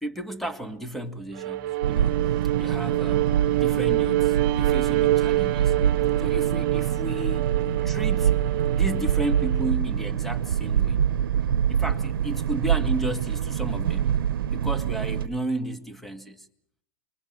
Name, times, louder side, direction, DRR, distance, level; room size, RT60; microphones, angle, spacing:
voice 1, 0.0-2.2 2.6-5.7 6.2-7.5 7.8-8.4 8.7-11.0 11.7-14.2 14.5-16.5, right 1 dB, ahead, 2.0 m, -33 dB
Bowed string instrument, 1.3-9.7, right 15 dB, 50° right, 1.3 m, -26 dB
sound 1, 1.8-15.3, right 9 dB, 85° right, 0.9 m, -25 dB
27.0 x 22.0 x 7.7 m
hypercardioid pair, 125°, 12 cm